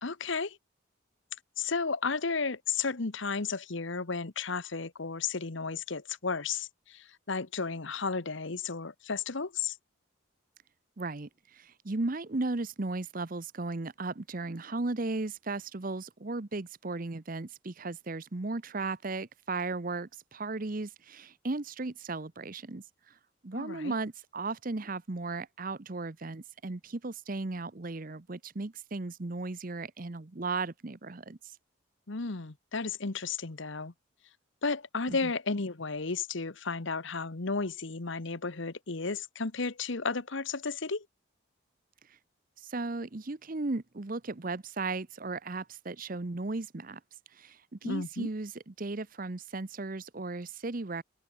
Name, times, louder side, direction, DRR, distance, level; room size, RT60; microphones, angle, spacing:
voice 1, 0.0-0.6 1.6-9.8 23.5-23.9 32.1-33.9 34.6-41.0 47.8-48.3, left 4 dB, 65° left, 1.1 m, -33 dB
voice 2, 11.0-23.1 23.4-31.5 35.1-35.3 42.6-47.0 47.3-51.0, right 3 dB, 40° right, 0.8 m, -36 dB
head